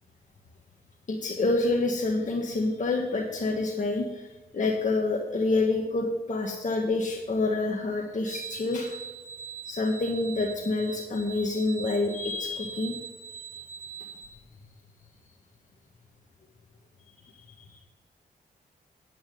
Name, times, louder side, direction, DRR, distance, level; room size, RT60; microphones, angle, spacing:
voice 1, 1.1-4.3 4.5-9.0 9.6-13.0 17.6-17.8, left 2 dB, 45° left, 0 dB, 1.7 m, -27 dB
sound 1, 8.3-14.3, right 7 dB, 45° right, 3.1 m, -42 dB
9.7 x 8.6 x 5.2 m, 1.1 s
cardioid pair, 60°, 18 cm